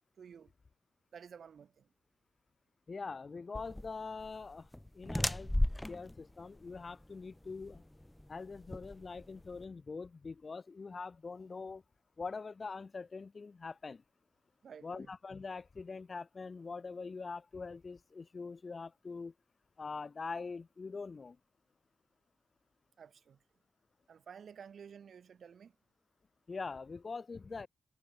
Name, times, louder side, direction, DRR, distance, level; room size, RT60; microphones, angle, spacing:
voice 1, 0.2-0.5 1.1-1.9 14.6-15.1 23.0-23.4 24.1-25.8, right 7 dB, 70° right, 1.0 m, -52 dB
voice 2, 2.9-4.7 4.9-5.5 5.9-7.8 8.3-11.8 12.2-14.0 14.8-19.3 19.8-21.4 26.5-27.7, left 4 dB, 45° left, 1.5 m, -43 dB
sound 1, 3.5-9.6, left 1 dB, 10° left, 0.4 m, -37 dB
cardioid pair, 80°, 0 cm